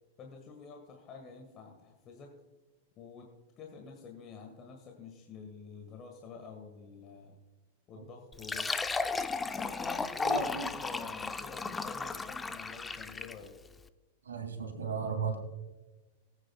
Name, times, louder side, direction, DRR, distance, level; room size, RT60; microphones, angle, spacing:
voice 1, 0.2-2.3 3.0-7.4 7.9-8.8 9.5-13.5, left 5 dB, 35° left, 1 dB, 1.7 m, -49 dB
Fill (with liquid), 8.3-13.5, left 4 dB, 15° left, 0.5 m, -34 dB
voice 2, 10.2-10.7 14.3-15.4, right 5 dB, 80° right, 4 dB, 2.5 m, -35 dB
18.5 x 9.0 x 2.3 m, 1.2 s
hypercardioid pair, 100°, 0 cm